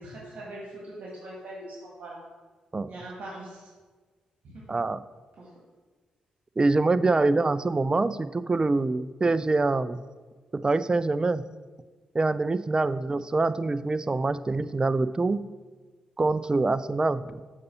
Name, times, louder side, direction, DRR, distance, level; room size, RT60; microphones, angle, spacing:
voice 1, 0.0-2.2 2.9-3.6 4.4-4.6 5.4-5.5 7.0-7.2, right 1 dB, 60° right, -5 dB, 1.9 m, -41 dB
voice 2, 4.7-5.0 6.6-10.0 10.5-11.4 12.1-15.5 16.2-17.4, right 3 dB, 30° right, 14 dB, 0.4 m, -25 dB
6.7 x 4.0 x 5.5 m, 1.4 s
hypercardioid pair, 45°, 3 cm